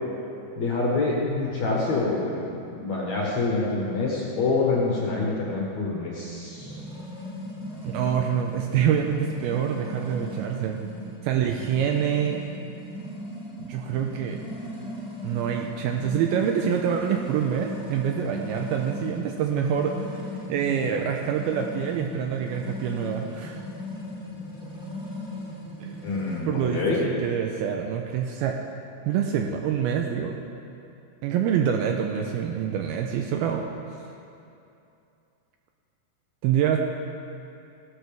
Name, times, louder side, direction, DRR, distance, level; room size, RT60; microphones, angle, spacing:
voice 1, 0.6-2.5 2.8-6.8 26.0-27.0, left 3 dB, 60° left, -4 dB, 2.0 m, -26 dB
sound 1, 6.6-26.4, left 1 dB, 5° right, 0.4 m, -37 dB
voice 2, 7.8-10.8 11.2-12.4 13.6-14.4 15.2-20.2 20.5-23.6 25.8-26.1 26.4-28.6 29.1-30.4 31.2-33.6 36.4-36.8, right 8 dB, 85° right, 3 dB, 2.3 m, -26 dB
16.5 x 12.5 x 3.5 m, 2.7 s
omnidirectional pair, 4.9 m